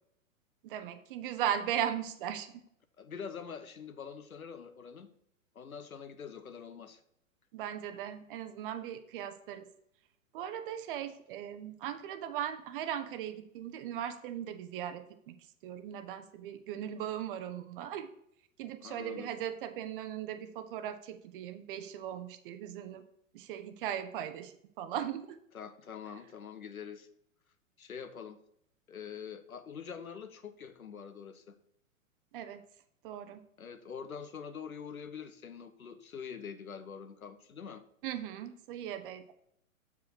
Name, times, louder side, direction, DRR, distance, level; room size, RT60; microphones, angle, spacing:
voice 1, 0.6-2.6 7.5-9.7 10.3-15.4 15.6-18.1 18.6-23.0 23.3-25.4 32.3-32.6 33.0-33.4 38.0-39.3, right 10 dB, 40° right, 10 dB, 0.8 m, -38 dB
voice 2, 3.0-5.1 5.5-7.0 18.8-19.3 25.5-27.1 27.8-28.4 28.9-31.6 33.6-37.8, left 7 dB, 80° left, 10 dB, 0.9 m, -45 dB
7.0 x 5.0 x 4.5 m, 0.72 s
figure-of-eight pair, 105°, 42 cm